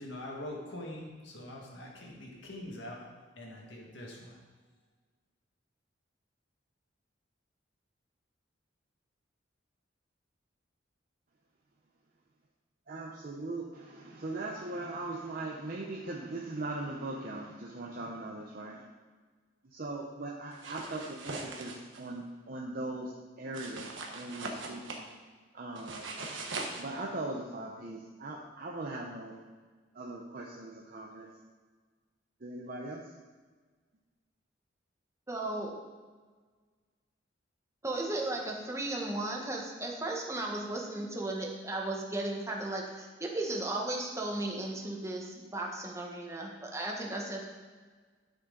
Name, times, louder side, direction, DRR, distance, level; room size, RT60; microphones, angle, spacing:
voice 1, 0.0-3.0 3.4-4.4, left 1 dB, 70° left, -1 dB, 1.9 m, -43 dB
voice 2, 12.9-18.8 19.6-25.0 25.5-26.1 26.8-29.4 29.9-31.3 32.4-33.0, right 2 dB, 50° right, -2 dB, 0.8 m, -40 dB
sound 1, 20.5-22.0 23.5-25.0 25.8-26.8, right 3 dB, 85° right, 1.2 m, -40 dB
voice 3, 35.3-35.7 37.8-47.4, right 2 dB, 15° right, -1 dB, 1.2 m, -35 dB
11.0 x 6.4 x 3.9 m, 1.4 s
head